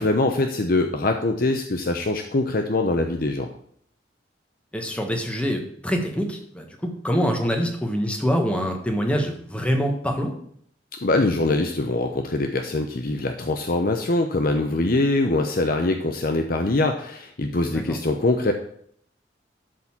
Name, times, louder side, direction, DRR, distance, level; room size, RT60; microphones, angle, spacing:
voice 1, 0.0-3.5 11.0-18.5, left 2 dB, 50° left, 5 dB, 0.8 m, -23 dB
voice 2, 4.7-10.3 17.7-18.0, equal, 5° left, 2 dB, 1.6 m, -25 dB
12.5 x 4.2 x 7.3 m, 0.66 s
head